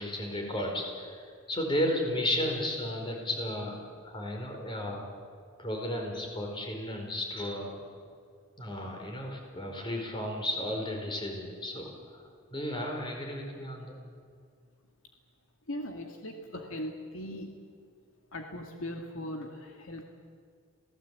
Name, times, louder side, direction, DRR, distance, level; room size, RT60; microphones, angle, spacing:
voice 1, 0.0-5.1 5.6-7.7 8.6-14.0, left 1 dB, 25° left, 2 dB, 4.8 m, -34 dB
voice 2, 15.7-17.6 18.3-20.0, left 1 dB, 75° left, 3 dB, 2.3 m, -39 dB
28.0 x 17.5 x 8.5 m, 2.1 s
head